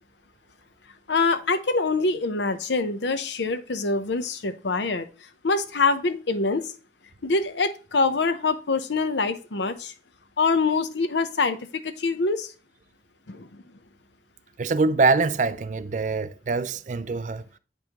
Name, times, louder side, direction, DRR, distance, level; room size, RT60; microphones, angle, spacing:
voice 1, 1.1-5.1 5.4-6.7 7.2-9.9 10.4-11.6 11.8-12.5 13.3-13.6, left 3 dB, 85° left, 0.8 m, -25 dB
voice 2, 14.6-17.4, right 4 dB, 45° right, 0.4 m, -24 dB
8.3 x 5.4 x 2.9 m
head